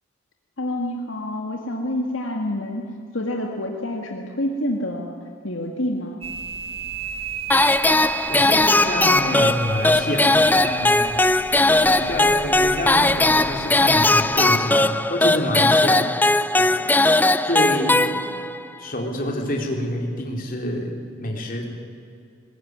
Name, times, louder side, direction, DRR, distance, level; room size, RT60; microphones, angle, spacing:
voice 1, 0.6-5.2 5.4-6.2, left 1 dB, 75° left, 1 dB, 2.1 m, -27 dB
sound 1, 6.2-14.4, right 5 dB, 30° right, 1.6 m, -32 dB
sound 2, 7.5-18.6, left 2 dB, 10° left, 0.5 m, -19 dB
voice 2, 8.3-11.2 11.8-16.9 17.4-18.2 18.8-20.9 21.2-21.7, left 1 dB, 45° left, 1 dB, 4.1 m, -27 dB
21.0 x 21.0 x 9.8 m, 2.4 s
head